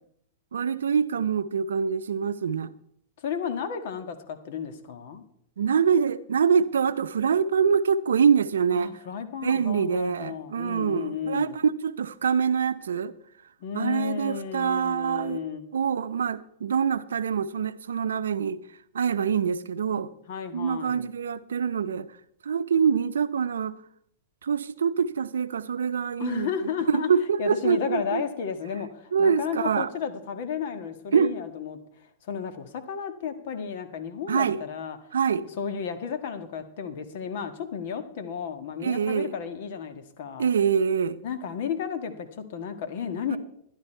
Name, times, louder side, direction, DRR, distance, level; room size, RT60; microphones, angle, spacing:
voice 1, 0.5-2.7 5.6-8.9 9.4-13.1 13.7-15.4 15.7-18.6 18.9-20.1 20.5-22.1 22.4-23.7 24.4-26.5 26.9-28.2 29.1-29.9 31.1-31.3 34.3-34.6 35.1-35.5 38.8-39.3 40.4-41.2 43.3-43.4, right 6 dB, 80° right, 0.6 m, -25 dB
voice 2, 3.2-5.2 8.7-11.6 13.6-15.6 20.3-21.1 26.2-27.1 27.4-35.0 35.6-40.5 41.2-43.4, left 7 dB, 60° left, 1.6 m, -33 dB
12.0 x 10.5 x 4.5 m
hypercardioid pair, 115°, 0 cm